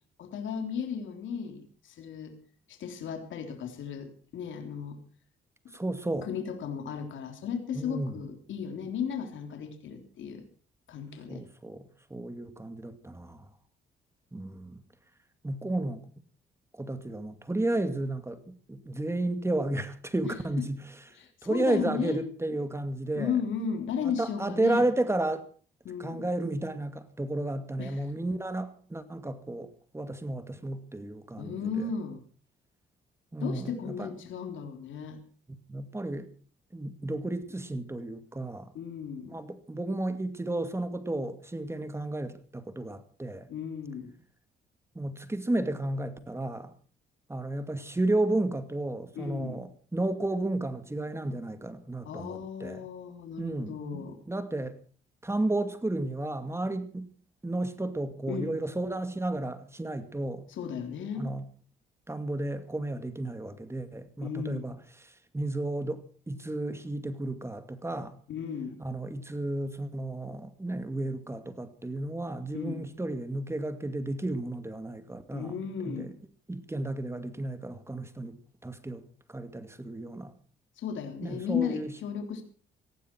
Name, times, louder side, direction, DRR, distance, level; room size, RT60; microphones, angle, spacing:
voice 1, 0.2-2.4 2.7-5.0 6.3-10.4 10.9-11.4 20.3-20.4 21.2-22.2 23.2-24.9 25.9-26.2 27.8-28.0 31.4-32.2 33.4-35.2 38.8-39.4 43.5-44.2 49.2-49.7 52.0-54.2 58.3-58.5 60.6-61.3 64.2-64.7 68.3-68.8 72.5-72.9 75.3-76.1 80.8-82.4, left 7 dB, 75° left, 3.5 m, -35 dB
voice 2, 5.7-6.3 7.7-8.2 11.3-13.5 14.3-14.8 15.4-16.1 16.7-20.9 21.4-23.4 24.0-25.5 26.0-31.9 33.3-34.1 35.7-36.3 36.7-38.7 39.3-43.5 44.9-46.7 47.3-52.9 53.4-54.8 55.2-57.1 57.4-60.5 61.2-61.5 62.1-68.2 68.8-76.1 76.5-78.4 78.6-80.3 81.2-81.9, right 2 dB, 15° right, 2.4 m, -33 dB
19.0 x 15.0 x 4.6 m
cardioid pair, 90°, 20 cm